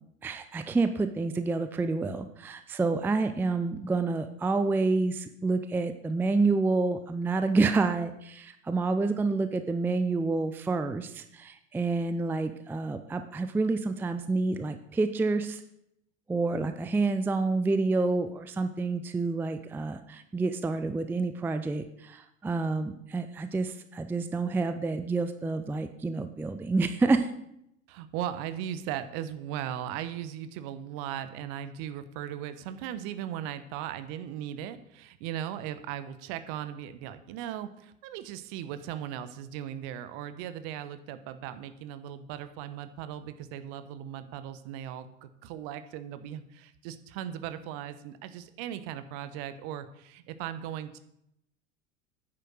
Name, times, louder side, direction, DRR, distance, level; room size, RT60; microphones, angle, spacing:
voice 1, 0.2-15.6 16.3-27.3, right 3 dB, 5° right, 10 dB, 0.5 m, -28 dB
voice 2, 27.9-51.0, right 10 dB, 45° right, 12 dB, 1.1 m, -38 dB
9.9 x 8.6 x 6.3 m, 0.78 s
figure-of-eight pair, 80°, 38 cm